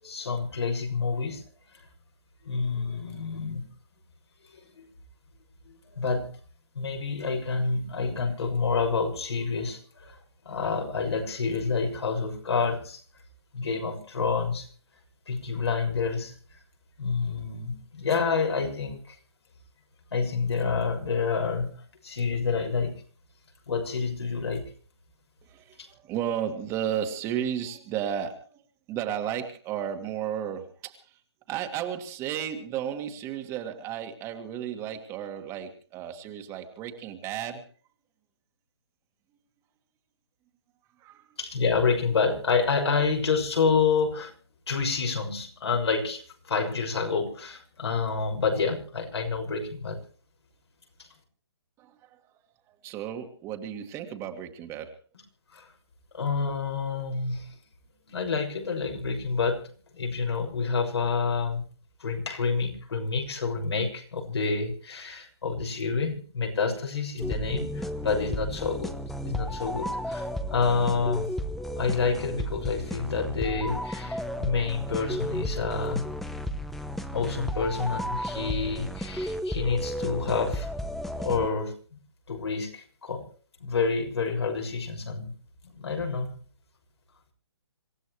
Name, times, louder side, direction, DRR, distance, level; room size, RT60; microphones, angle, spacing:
voice 1, 0.0-1.4 2.4-3.7 4.8-4.9 5.7-6.3 6.7-10.2 10.4-13.0 13.5-14.7 15.3-16.3 17.0-19.2 20.1-23.0 23.7-24.7 41.4-44.3 44.7-50.0 51.0-51.1 55.5-55.7 56.1-57.5 58.1-61.6 62.0-68.9 69.2-71.3 71.8-76.0 77.1-80.7 81.2-82.0 82.3-83.2 83.6-85.3 85.6-86.4, left 4 dB, 75° left, 2 dB, 6.3 m, -28 dB
voice 2, 25.4-28.6 28.9-31.2 31.5-37.7 41.0-41.3 51.8-52.3 52.7-55.0, right 9 dB, 20° right, 5 dB, 2.1 m, -33 dB
sound 1, 67.2-81.5, equal, ahead, 0.9 m, -33 dB
26.5 x 15.5 x 3.3 m, 0.42 s
hypercardioid pair, 150°, 14 cm